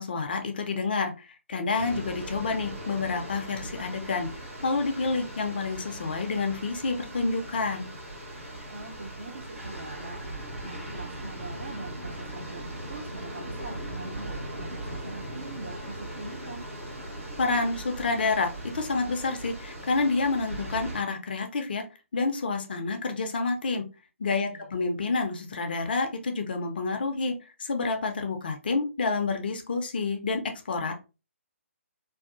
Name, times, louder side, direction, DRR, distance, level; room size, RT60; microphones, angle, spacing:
voice 1, 0.0-4.3 4.6-7.9 17.4-18.5 18.7-21.8 22.1-23.9 24.2-30.9, left 3 dB, 45° left, 5 dB, 0.5 m, -28 dB
sound 1, 1.8-21.0, right 1 dB, 75° right, 1.0 m, -39 dB
voice 2, 8.7-10.3 10.6-16.7 24.2-24.8, right 3 dB, 50° right, 1 dB, 0.8 m, -43 dB
2.6 x 2.3 x 2.5 m, 0.30 s
figure-of-eight pair, 140°, 7 cm